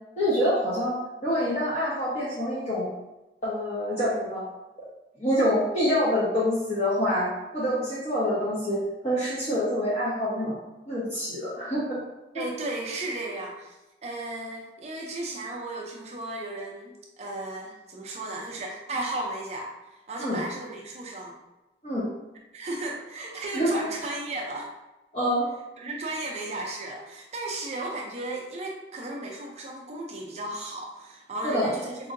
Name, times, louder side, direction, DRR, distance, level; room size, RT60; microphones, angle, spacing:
voice 1, 0.2-0.9 1.2-2.9 3.4-4.4 5.2-8.8 9.0-10.6 10.9-12.0 12.3-12.4 20.2-20.4 21.8-22.1 23.5-23.7 25.1-25.5 31.4-31.7, equal, 35° left, -10 dB, 0.9 m, -26 dB
voice 2, 12.3-21.4 22.5-24.7 25.8-32.1, right 2 dB, 35° right, -1 dB, 0.5 m, -35 dB
4.5 x 2.7 x 2.5 m, 1.0 s
head